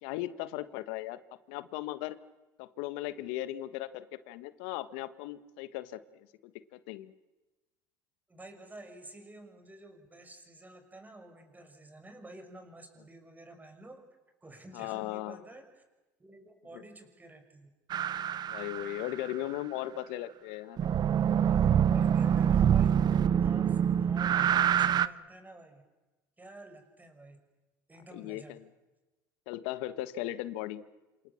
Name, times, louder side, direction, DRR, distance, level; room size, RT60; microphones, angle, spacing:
voice 1, 0.0-1.2 1.5-2.2 2.6-7.1 14.7-15.4 16.7-16.8 18.5-20.8 28.1-28.6 29.5-30.8, left 14 dB, 70° left, 13 dB, 1.5 m, -37 dB
voice 2, 8.3-14.1 14.4-15.8 16.2-17.7 21.4-23.1 23.4-25.8 26.4-27.4 27.9-28.6, right 1 dB, 15° right, 6 dB, 6.2 m, -50 dB
sound 1, 17.9-19.3 20.8-25.1, right 9 dB, 45° right, 0.9 m, -25 dB
27.5 x 27.0 x 7.3 m, 1.1 s
hypercardioid pair, 75°, 10 cm